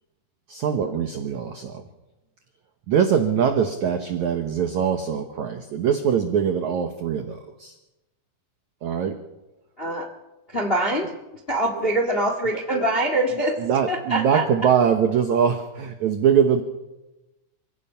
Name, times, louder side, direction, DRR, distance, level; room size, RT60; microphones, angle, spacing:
voice 1, 0.5-1.8 2.9-7.8 8.8-9.2 12.1-12.8 13.6-16.6, right 7 dB, 80° right, 7 dB, 1.6 m, -23 dB
voice 2, 9.8-10.1 10.5-13.6 13.9-14.4, right 1 dB, 50° left, 5 dB, 0.7 m, -24 dB
28.5 x 16.5 x 5.7 m, 1.0 s
omnidirectional pair, 5.0 m